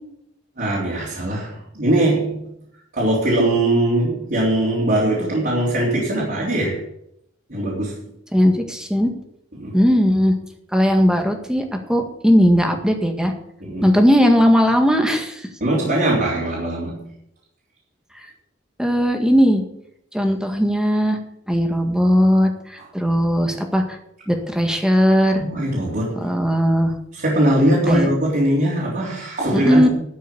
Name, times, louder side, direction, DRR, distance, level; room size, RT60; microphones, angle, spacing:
voice 1, 0.6-2.5 2.9-6.8 7.5-8.1 9.6-9.8 13.6-14.0 15.6-17.1 25.4-26.3 27.1-29.9, right 1 dB, 50° right, -5 dB, 3.6 m, -21 dB
voice 2, 8.3-9.1 9.7-10.3 10.7-13.3 13.8-15.5 18.8-19.6 20.1-21.2 21.5-24.0 24.3-25.4 26.1-26.9 27.9-28.1 29.5-29.9, equal, 5° right, 4 dB, 1.8 m, -17 dB
12.5 x 6.4 x 8.5 m, 0.77 s
head